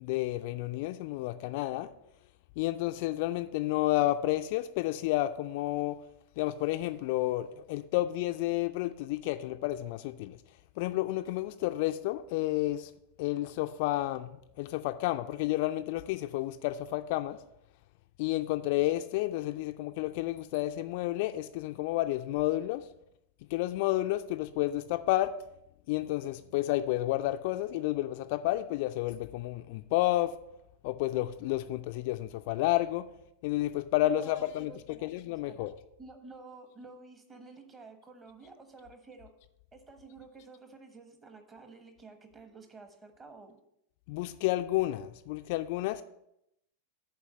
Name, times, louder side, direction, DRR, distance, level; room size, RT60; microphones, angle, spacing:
voice 1, 0.0-1.9 2.6-6.0 6.4-10.4 10.8-12.9 13.2-17.4 18.2-22.9 23.5-25.3 25.9-30.3 30.8-33.1 33.4-35.7 44.1-46.0, left 16 dB, 50° left, 0.3 m, -31 dB
voice 2, 34.0-35.7 36.0-39.3 39.7-43.6, right 3 dB, 20° right, 1.2 m, -51 dB
7.0 x 4.5 x 6.8 m
figure-of-eight pair, 90°, 0 cm